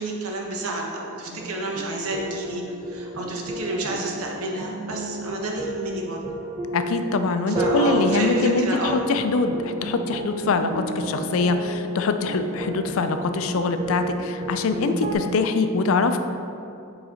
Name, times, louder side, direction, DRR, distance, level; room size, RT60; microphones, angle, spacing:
voice 1, 0.0-6.2 7.5-9.0, right 2 dB, 80° right, 0 dB, 0.9 m, -30 dB
sound 1, 1.3-15.1, right 1 dB, 25° right, 0.6 m, -31 dB
voice 2, 6.7-16.2, left 3 dB, 65° left, 8 dB, 0.4 m, -23 dB
5.0 x 4.0 x 5.0 m, 2.6 s
head